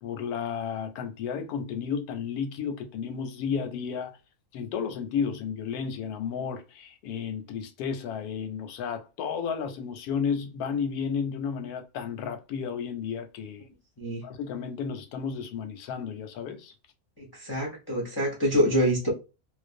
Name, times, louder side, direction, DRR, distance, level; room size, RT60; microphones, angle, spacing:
voice 1, 0.0-4.2 4.5-13.7 14.2-16.7, left 6 dB, 90° left, 1.1 m, -32 dB
voice 2, 17.2-19.1, equal, 30° left, 0.4 m, -26 dB
2.5 x 2.1 x 2.4 m
omnidirectional pair, 1.5 m